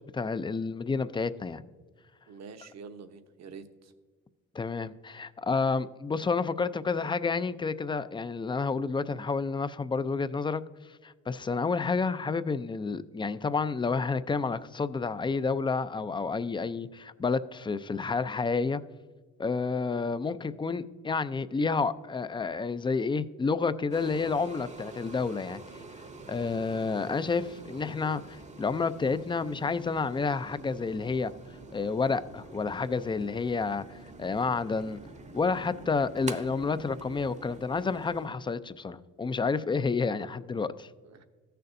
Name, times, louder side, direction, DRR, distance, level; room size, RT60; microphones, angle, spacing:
voice 1, 0.1-1.6 4.5-10.6 11.0-18.8 19.4-25.6 26.3-31.3 31.7-33.8 34.2-35.0 35.3-40.9, left 4 dB, 15° left, 0.4 m, -30 dB
voice 2, 2.3-3.9 20.1-20.2 41.0-41.2, right 5 dB, 60° right, 0.9 m, -47 dB
sound 1, 23.9-38.3, right 3 dB, 25° right, 0.8 m, -46 dB
14.5 x 6.7 x 2.6 m
cardioid pair, 90°, 30 cm